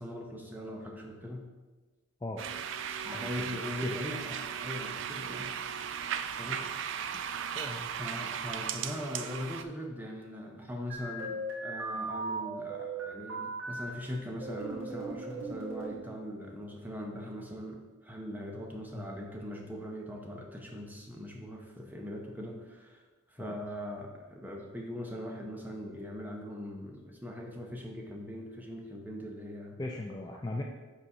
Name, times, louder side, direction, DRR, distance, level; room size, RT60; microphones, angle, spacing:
voice 1, 0.0-1.5 3.0-5.5 6.4-6.7 7.9-23.0 23.3-29.8, equal, 10° right, 0 dB, 0.7 m, -41 dB
sound 1, 2.4-9.6, right 8 dB, 65° right, 0.3 m, -37 dB
voice 2, 3.1-4.0 7.6-7.9 18.9-19.1 23.4-23.6 29.8-30.6, left 2 dB, 20° left, 1 dB, 0.3 m, -38 dB
sound 2, 10.9-13.9 14.4-16.0, right 3 dB, 85° right, 2.2 m, -38 dB
5.4 x 4.1 x 5.8 m, 1.3 s
head